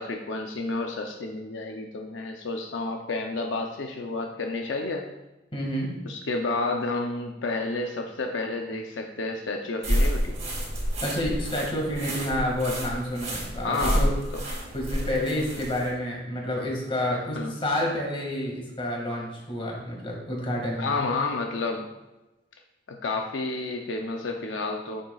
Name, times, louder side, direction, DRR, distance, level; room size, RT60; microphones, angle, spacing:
voice 1, 0.0-5.1 6.1-10.4 13.6-14.1 17.3-17.5 20.8-21.9 22.9-25.0, left 3 dB, 75° left, 2 dB, 0.6 m, -30 dB
voice 2, 5.5-5.9 11.0-14.1 14.7-20.9, left 1 dB, 30° left, -2 dB, 2.0 m, -29 dB
sound 1, 9.8-15.9, equal, 35° right, 2.1 m, -29 dB
9.7 x 6.6 x 2.4 m, 1.1 s
head